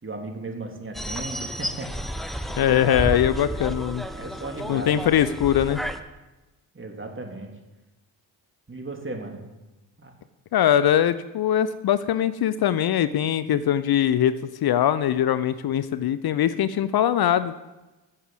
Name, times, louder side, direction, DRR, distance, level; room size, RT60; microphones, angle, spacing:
voice 1, 0.0-3.3 4.1-5.0 6.7-7.5 8.7-9.4 10.0-10.1, right 2 dB, 25° right, 3 dB, 2.9 m, -36 dB
sound 1, 0.9-6.0, equal, ahead, 1.1 m, -32 dB
voice 2, 2.6-4.0 4.7-5.8 10.5-14.4 14.6-17.6, left 10 dB, 55° left, 15 dB, 0.7 m, -22 dB
12.5 x 7.3 x 7.9 m, 1.1 s
supercardioid pair, 50°, 45 cm